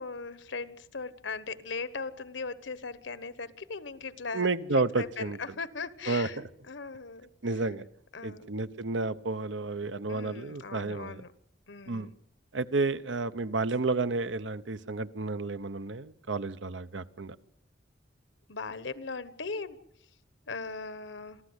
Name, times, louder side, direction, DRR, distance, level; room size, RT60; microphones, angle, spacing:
voice 1, 0.0-4.5 5.0-7.6 8.1-8.7 10.1-11.3 11.7-12.2 18.5-19.8 20.5-21.4, left 4 dB, 85° left, 14 dB, 1.3 m, -39 dB
voice 2, 4.3-5.4 6.1-6.3 7.4-7.8 8.2-11.2 11.9-12.1 12.5-17.4, right 3 dB, 85° right, 13 dB, 0.9 m, -31 dB
27.0 x 14.5 x 8.1 m, 0.73 s
head